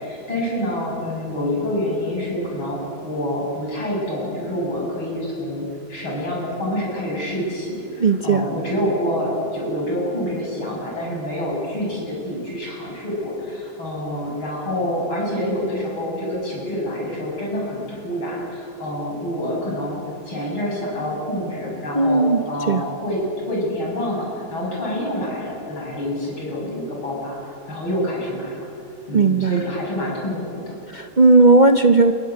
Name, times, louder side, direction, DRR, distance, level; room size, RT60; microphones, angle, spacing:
voice 1, 0.0-20.0 20.3-23.2 23.5-27.4 27.7-28.7 29.1-30.8, equal, 80° left, -3 dB, 8.2 m, -27 dB
voice 2, 8.0-8.5 21.9-22.8 29.1-29.6 30.9-32.1, right 3 dB, 85° right, 7 dB, 0.4 m, -16 dB
26.5 x 22.0 x 9.6 m, 2.5 s
omnidirectional pair, 2.2 m